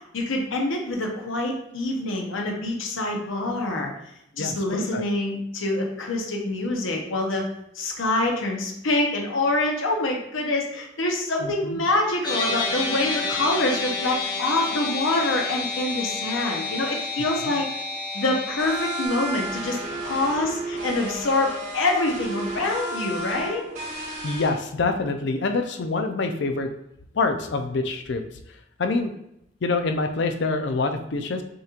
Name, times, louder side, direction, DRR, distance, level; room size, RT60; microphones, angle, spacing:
voice 1, 0.1-3.9 4.4-7.4 7.7-17.7 18.1-19.8 20.0-23.6, left 2 dB, 90° left, 1 dB, 0.8 m, -25 dB
voice 2, 4.4-5.0 11.4-11.8 17.4-17.5 24.2-26.7 27.1-28.2 28.8-29.1 29.6-31.4, left 3 dB, 60° left, 6 dB, 0.5 m, -26 dB
sound 1, 12.2-19.1, left 4 dB, 20° left, 0.8 m, -29 dB
sound 2, 18.6-24.5, right 1 dB, 40° right, 1.1 m, -33 dB
6.4 x 3.0 x 2.4 m, 0.78 s
head